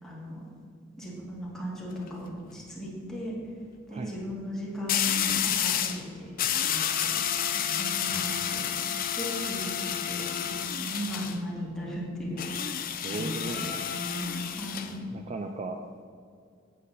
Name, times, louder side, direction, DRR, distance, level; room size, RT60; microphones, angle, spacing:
voice 1, 0.0-0.5 1.0-3.3 3.9-6.3 6.6-7.2 7.5-8.8 9.2-15.1, equal, 5° left, -5 dB, 1.9 m, -37 dB
sound 1, 1.7-2.1 4.9-6.0 6.4-11.4 12.4-14.9, left 9 dB, 45° left, 0.5 m, -30 dB
voice 2, 13.0-13.9 15.1-15.8, right 3 dB, 35° right, 5 dB, 0.4 m, -36 dB
8.1 x 7.6 x 4.1 m, 2.2 s
head